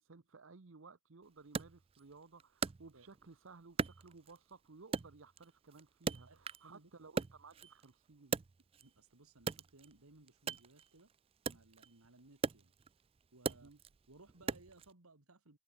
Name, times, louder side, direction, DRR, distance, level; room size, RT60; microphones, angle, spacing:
voice 1, 0.0-8.4 13.4-13.8, right 4 dB, 60° right, 0.8 m, -58 dB
Wood, 1.5-3.3 3.8-4.5 4.9-6.7 7.0-9.0 9.4-14.9, right 5 dB, 25° right, 0.3 m, -41 dB
voice 2, 6.3-6.9 8.8-11.1 11.5-12.7 13.3-13.7 14.1-15.6, right 2 dB, 80° right, 2.1 m, -62 dB
head